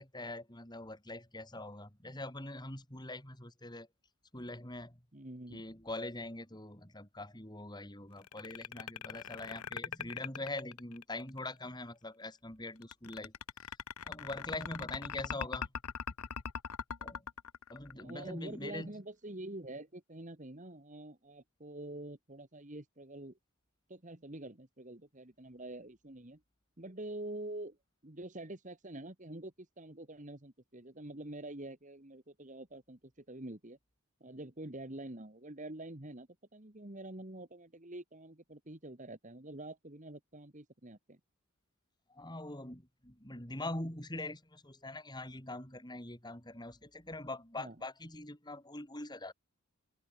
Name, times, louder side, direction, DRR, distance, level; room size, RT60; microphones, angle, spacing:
voice 1, 0.0-3.9 4.3-5.0 5.5-13.3 14.1-15.7 17.0-17.2 17.7-18.9 42.1-49.3, left 2 dB, 20° left, 4.0 m, -43 dB
voice 2, 5.1-5.7 17.9-23.4 23.9-26.4 26.8-27.8 28.0-33.8 34.2-41.2 47.6-47.8, right 1 dB, 35° right, 1.8 m, -46 dB
sound 1, 8.2-11.4 12.8-18.3, left 7 dB, 85° left, 1.0 m, -41 dB
head